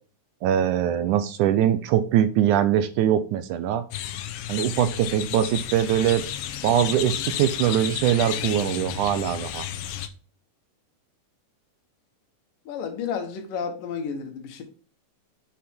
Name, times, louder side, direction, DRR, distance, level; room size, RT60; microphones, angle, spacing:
voice 1, 0.4-3.8 4.5-6.2 6.6-9.7, right 10 dB, 80° right, 1.8 m, -22 dB
sound 1, 3.9-10.1, left 11 dB, 90° left, 2.5 m, -32 dB
voice 2, 12.7-14.6, left 6 dB, 70° left, 2.8 m, -31 dB
7.5 x 6.6 x 3.6 m
omnidirectional pair, 4.1 m